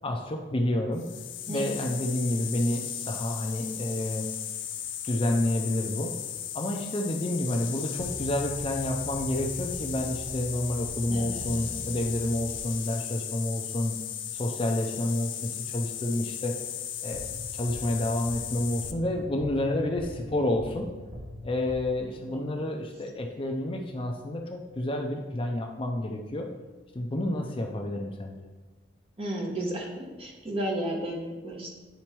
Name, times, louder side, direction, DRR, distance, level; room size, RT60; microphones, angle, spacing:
voice 1, 0.0-1.1 1.5-4.3 5.0-6.2 6.5-14.0 14.3-16.6 17.0-20.9 21.4-26.5 26.9-28.5, left 1 dB, 30° left, 2 dB, 0.5 m, -29 dB
sound 1, 1.0-18.9, left 10 dB, 85° left, 0.6 m, -36 dB
voice 2, 1.5-1.8 11.1-11.8 22.3-22.4 29.2-31.8, right 1 dB, 30° right, -2 dB, 1.4 m, -33 dB
sound 2, 8.0-13.1 17.1-22.3, equal, 85° right, 1.1 m, -42 dB
10.5 x 4.3 x 3.0 m, 1.2 s
head